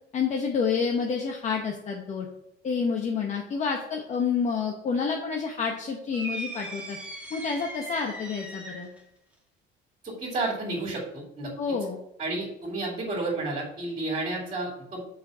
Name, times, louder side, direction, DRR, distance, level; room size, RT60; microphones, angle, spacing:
voice 1, 0.1-2.3 2.6-7.0 7.3-8.9 11.6-12.0, left 5 dB, 40° left, 1 dB, 1.0 m, -28 dB
sound 1, 6.1-9.0, right 1 dB, 5° right, 1.7 m, -38 dB
voice 2, 10.0-11.5 12.2-15.0, right 2 dB, 35° right, -6 dB, 2.9 m, -31 dB
6.9 x 5.1 x 5.6 m, 0.81 s
cardioid pair, 145°, 19 cm